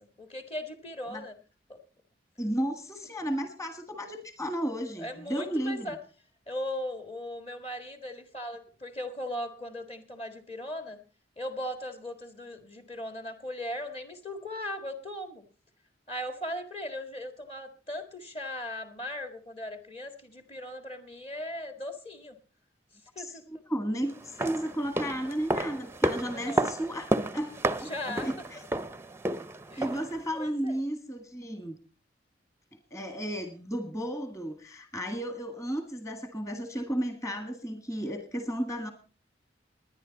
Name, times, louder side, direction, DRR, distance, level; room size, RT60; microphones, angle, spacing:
voice 1, 0.2-1.4 1.7-1.8 5.0-6.0 6.5-11.0 11.4-15.4 16.1-22.4 23.2-23.4 26.3-26.7 27.8-28.3 29.7-29.9 30.4-30.8, left 1 dB, 35° left, 7 dB, 1.8 m, -38 dB
voice 2, 2.4-6.0 23.2-28.6 29.8-31.8 32.9-38.9, equal, 20° left, 6 dB, 1.8 m, -33 dB
sound 1, 24.2-30.2 30.5-30.6, right 1 dB, 15° right, 0.6 m, -31 dB
20.5 x 10.0 x 4.1 m, 0.38 s
head